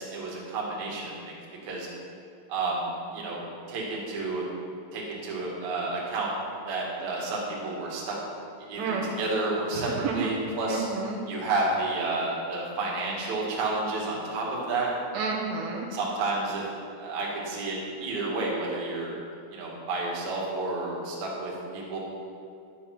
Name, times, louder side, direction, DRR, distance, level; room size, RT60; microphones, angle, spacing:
voice 1, 0.0-1.3 1.6-1.9 2.5-3.4 3.7-4.4 4.9-6.3 6.7-8.2 8.7-10.9 11.3-14.9 15.9-16.6 17.0-19.2 19.5-22.0, right 2 dB, 50° right, -4 dB, 2.8 m, -30 dB
voice 2, 9.8-10.3 10.7-11.2 15.1-15.9, right 5 dB, 75° right, -2 dB, 3.6 m, -30 dB
11.5 x 8.2 x 6.0 m, 2.5 s
omnidirectional pair, 5.8 m